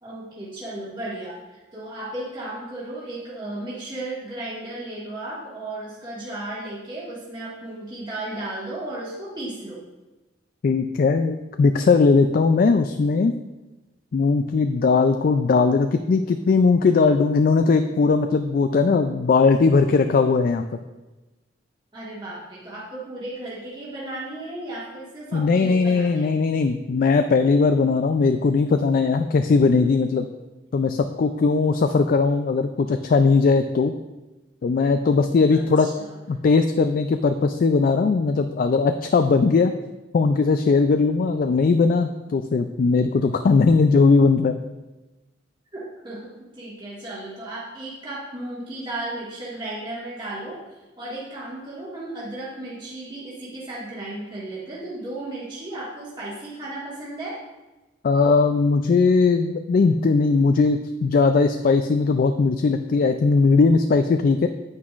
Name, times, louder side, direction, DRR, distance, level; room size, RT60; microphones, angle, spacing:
voice 1, 0.0-9.8 21.9-26.3 35.5-36.1 45.7-57.4, right 1 dB, 25° right, -8 dB, 1.6 m, -35 dB
voice 2, 10.6-13.3 14.1-20.6 25.3-30.3 30.7-33.9 34.6-35.9 36.3-39.7 40.1-44.6 58.0-64.5, left 4 dB, 50° left, 7 dB, 0.3 m, -19 dB
9.5 x 8.0 x 2.5 m, 1.1 s
head